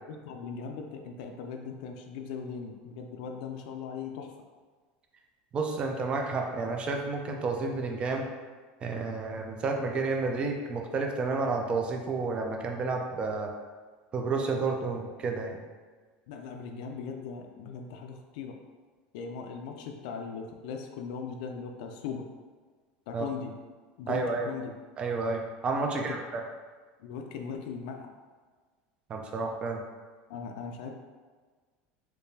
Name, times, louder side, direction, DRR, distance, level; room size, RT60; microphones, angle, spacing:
voice 1, 0.1-4.3 16.3-18.6 19.1-22.3 23.1-23.5 24.0-24.7 25.8-26.2 27.0-28.1 30.3-30.9, left 6 dB, 75° left, 3 dB, 0.4 m, -39 dB
voice 2, 5.5-8.2 8.8-13.5 14.1-15.6 23.1-23.2 24.1-24.5 25.0-26.4 29.1-29.8, right 3 dB, 25° right, 2 dB, 0.4 m, -30 dB
3.6 x 2.8 x 2.7 m, 1.5 s
supercardioid pair, 150°, 4 cm